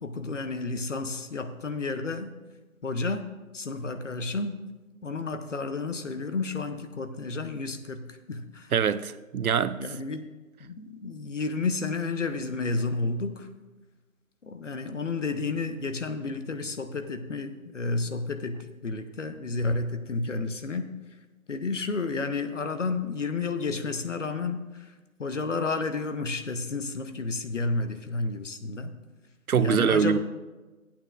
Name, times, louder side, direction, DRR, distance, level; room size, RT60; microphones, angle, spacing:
voice 1, 0.0-2.3 2.8-3.3 3.5-4.6 5.0-8.0 8.3-8.7 9.8-10.3 10.6-13.5 14.4-20.9 21.5-24.6 25.2-28.9 29.6-30.2, left 3 dB, 60° left, 0.9 m, -31 dB
voice 2, 8.7-9.8 29.5-30.2, right 7 dB, 90° right, 0.6 m, -23 dB
14.0 x 8.7 x 2.5 m
figure-of-eight pair, 170°, 42 cm